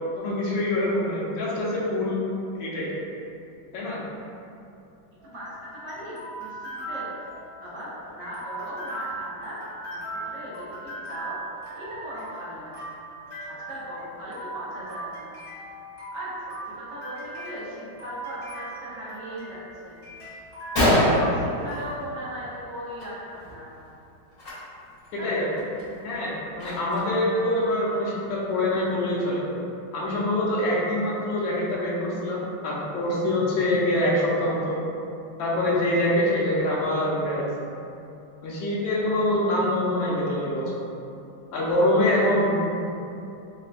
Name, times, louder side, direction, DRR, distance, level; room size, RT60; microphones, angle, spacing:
voice 1, 0.1-2.2 2.5-2.9 3.7-4.0 25.1-25.5 26.0-29.4 29.9-34.8 35.4-37.4 38.4-40.6 41.5-42.5 42.8-42.9, left 1 dB, 75° left, -6 dB, 1.4 m, -25 dB
voice 2, 5.1-7.1 7.6-9.6 9.9-11.3 11.7-12.9 13.5-15.3 16.1-19.6 19.8-20.0 20.8-23.7 25.1-25.5 42.2-42.3, equal, 70° right, -8 dB, 1.5 m, -38 dB
sound 1, 5.2-21.9, right 2 dB, 20° left, 1.0 m, -39 dB
Gunshot gunfire, 20.1-20.2 20.5-20.6 20.8-22.4 22.7-23.0 23.3-23.5 24.3-24.5 25.0-25.1 25.6-27.2, left 1 dB, 45° left, 1.3 m, -24 dB
4.5 x 2.2 x 2.4 m, 2.7 s
omnidirectional pair, 2.2 m